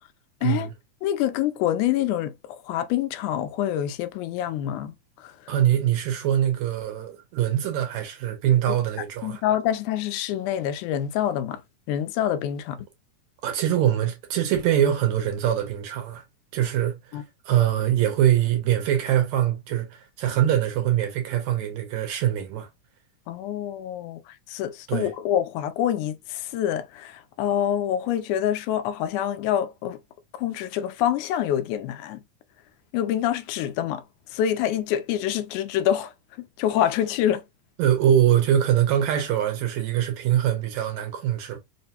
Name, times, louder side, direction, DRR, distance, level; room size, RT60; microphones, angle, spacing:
voice 1, 0.4-0.7 5.5-9.4 13.4-16.2 16.5-22.7 24.9-25.1 37.8-41.6, right 11 dB, 75° right, 1.9 m, -23 dB
voice 2, 1.0-4.9 5.2-5.3 9.2-11.6 11.9-12.8 17.1-17.2 23.3-24.2 24.5-30.0 30.4-32.2 32.9-34.0 34.3-36.1 36.6-37.4, left 11 dB, 85° left, 2.0 m, -26 dB
4.9 x 2.2 x 2.7 m
omnidirectional pair, 3.5 m